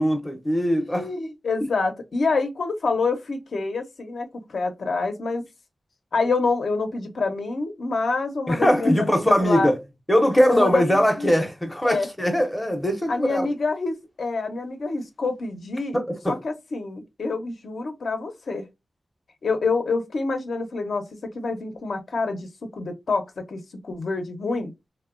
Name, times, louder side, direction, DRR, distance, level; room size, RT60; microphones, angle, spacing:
voice 1, 0.0-1.1 8.5-9.8 10.1-13.5 15.9-16.4, equal, 10° left, 0.5 m, -21 dB
voice 2, 0.9-5.4 6.1-9.7 10.5-11.3 11.8-12.1 13.1-16.0 16.3-18.6 19.4-24.7, left 3 dB, 65° left, 0.5 m, -27 dB
2.8 x 2.0 x 2.3 m
wide cardioid pair, 150°, 0 cm